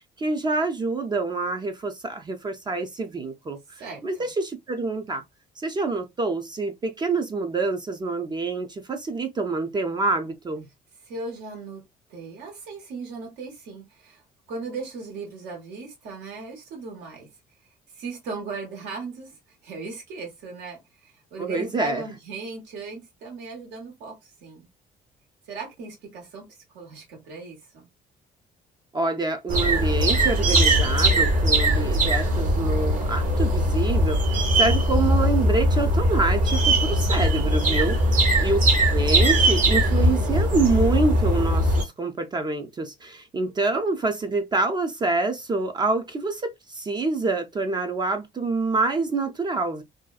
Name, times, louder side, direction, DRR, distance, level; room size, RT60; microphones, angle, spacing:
voice 1, 0.2-5.2 5.6-10.7 21.4-22.0 28.9-38.0 38.4-38.6 38.9-49.8, right 3 dB, 25° right, 0.4 m, -26 dB
voice 2, 3.8-4.3 11.0-11.8 12.1-14.2 14.5-17.3 17.9-19.4 19.6-24.7 25.5-27.9 38.1-38.5, right 4 dB, 85° right, 1.3 m, -37 dB
sound 1, 29.5-41.8, right 1 dB, 50° right, 0.9 m, -20 dB
2.5 x 2.3 x 2.3 m
cardioid pair, 110°, 17 cm